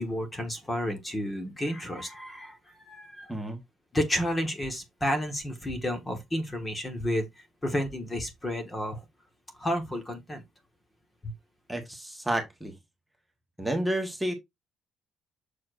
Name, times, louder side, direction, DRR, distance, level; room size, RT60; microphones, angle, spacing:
voice 1, 0.0-3.3 3.9-7.3 7.6-9.0 9.6-10.4 11.2-11.3, equal, 15° left, 1.4 m, -31 dB
voice 2, 11.7-12.7 13.6-14.3, right 1 dB, 5° right, 1.3 m, -30 dB
6.9 x 6.5 x 2.5 m
cardioid pair, 165°, 0 cm